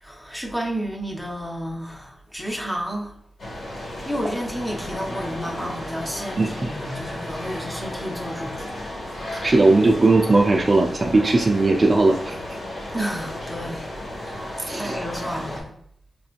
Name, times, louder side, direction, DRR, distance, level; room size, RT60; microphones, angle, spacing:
voice 1, 0.0-3.2 4.1-8.6 12.9-13.9 14.2-15.8, equal, 5° left, 1 dB, 0.6 m, -31 dB
sound 1, 3.4-15.6, left 1 dB, 60° left, 1.3 m, -34 dB
voice 2, 6.4-6.7 9.3-12.4 14.6-15.0, right 2 dB, 35° right, 2 dB, 0.3 m, -18 dB
5.2 x 2.8 x 2.4 m, 0.69 s
wide cardioid pair, 150°, 0 cm